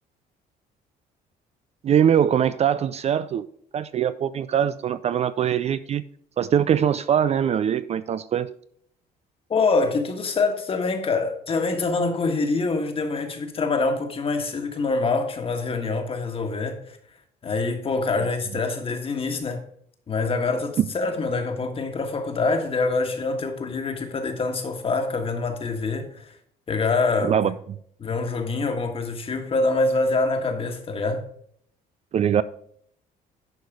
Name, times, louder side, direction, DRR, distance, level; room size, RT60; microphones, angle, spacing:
voice 1, 1.8-3.5 3.7-6.0 6.4-8.5 27.2-27.5 32.1-32.4, right 9 dB, 40° right, 0.4 m, -22 dB
voice 2, 9.5-17.0 17.4-19.6 20.1-26.3 26.7-27.3 28.0-31.2, left 3 dB, 35° left, 1.5 m, -25 dB
11.0 x 4.7 x 4.8 m
cardioid pair, 110°, 17 cm